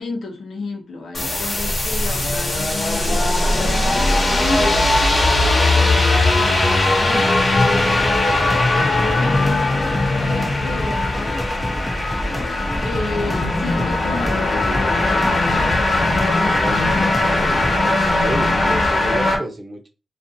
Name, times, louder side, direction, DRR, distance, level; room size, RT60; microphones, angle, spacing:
voice 1, 0.0-4.9 5.8-7.6 9.0-11.5 12.8-15.9 16.1-17.2, left 3 dB, 80° left, 0.6 m, -32 dB
sound 1, 1.1-19.4, left 2 dB, 50° left, 1.0 m, -19 dB
sound 2, 7.7-18.0, left 1 dB, 15° left, 0.4 m, -29 dB
voice 2, 16.4-17.6 18.2-19.9, right 2 dB, 45° right, 0.7 m, -30 dB
2.4 x 2.4 x 2.7 m
cardioid pair, 55°, 0 cm